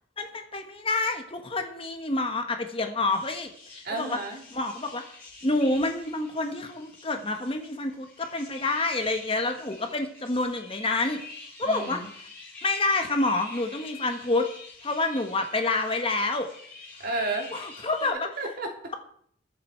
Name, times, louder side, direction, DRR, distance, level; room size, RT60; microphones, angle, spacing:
voice 1, 0.2-3.5 3.9-4.2 4.5-5.0 5.4-11.2 11.6-12.0 12.6-14.5 14.8-16.5 17.5-18.3, left 2 dB, 30° left, 6 dB, 1.3 m, -28 dB
sound 1, 3.1-18.1, left 3 dB, 10° left, 7.4 m, -47 dB
voice 2, 3.8-4.4 11.6-12.1 17.0-17.5 18.4-18.9, right 2 dB, 50° right, 1 dB, 3.0 m, -32 dB
21.5 x 7.8 x 4.5 m, 0.63 s
head